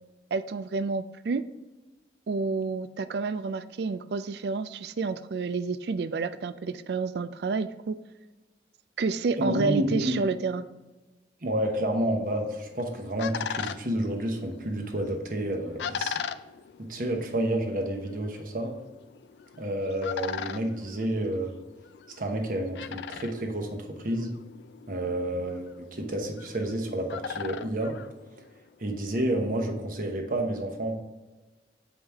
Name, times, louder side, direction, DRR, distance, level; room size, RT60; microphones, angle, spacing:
voice 1, 0.3-1.4 2.3-8.0 9.0-10.6, right 4 dB, 65° right, 13 dB, 0.4 m, -29 dB
voice 2, 9.4-10.2 11.4-16.2 16.8-18.7 19.6-21.5 22.2-24.3 24.9-27.9 28.8-30.9, right 1 dB, 50° right, 3 dB, 1.0 m, -30 dB
sound 1, 12.5-28.8, left 7 dB, 75° left, 0.3 m, -40 dB
7.1 x 4.9 x 3.5 m, 1.2 s
head